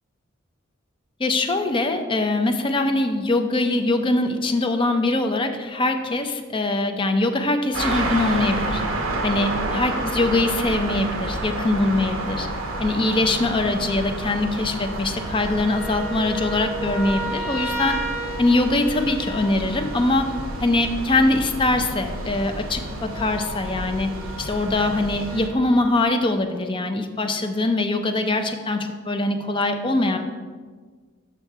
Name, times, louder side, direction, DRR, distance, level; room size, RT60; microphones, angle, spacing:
voice 1, 1.2-8.8 9.2-12.5 12.8-18.0 18.4-20.3 20.6-24.1 24.4-30.2, left 2 dB, 25° left, 6 dB, 0.5 m, -22 dB
sound 1, 7.7-10.5 10.9-25.9, right 1 dB, 5° left, 2.4 m, -37 dB
sound 2, 7.7-25.5, right 2 dB, 75° right, 0.9 m, -30 dB
7.2 x 5.8 x 4.5 m, 1.5 s
head